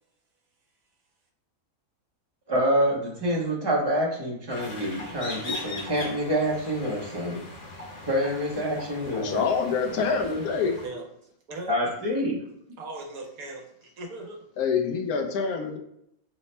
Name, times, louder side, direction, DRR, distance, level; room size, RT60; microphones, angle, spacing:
voice 1, 2.5-7.4 8.0-9.4 11.7-12.4, equal, 40° right, -3 dB, 0.3 m, -26 dB
sound 1, 4.5-10.9, left 2 dB, 50° left, 0.6 m, -40 dB
voice 2, 9.1-10.8 14.6-15.8, left 5 dB, 80° left, 3 dB, 1.1 m, -26 dB
voice 3, 11.5-12.0 12.8-14.4, right 2 dB, 70° right, 1 dB, 1.1 m, -39 dB
3.3 x 2.1 x 4.1 m, 0.74 s
omnidirectional pair, 1.6 m